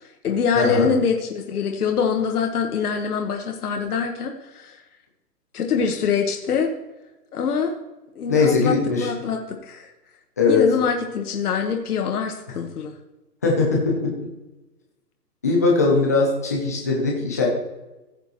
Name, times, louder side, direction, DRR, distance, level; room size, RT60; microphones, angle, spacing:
voice 1, 0.0-4.8 5.5-6.7 7.3-7.7 8.1-9.9 10.5-12.9, left 6 dB, 60° left, 3 dB, 1.3 m, -24 dB
voice 2, 0.5-0.9 8.3-9.1 10.4-10.6 13.4-14.3 15.4-17.5, left 4 dB, 10° left, -2 dB, 0.5 m, -20 dB
15.5 x 6.7 x 3.0 m, 1.0 s
hypercardioid pair, 155°, 49 cm